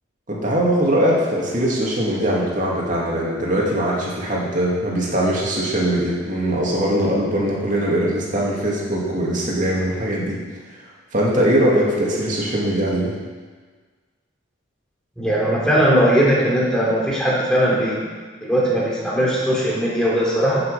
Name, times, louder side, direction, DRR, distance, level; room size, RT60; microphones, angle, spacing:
voice 1, 0.3-10.4 11.1-13.1, right 1 dB, 40° right, -4 dB, 2.6 m, -21 dB
voice 2, 15.2-18.1 18.4-20.6, equal, 5° left, -6 dB, 2.9 m, -19 dB
13.5 x 6.9 x 5.1 m, 1.5 s
head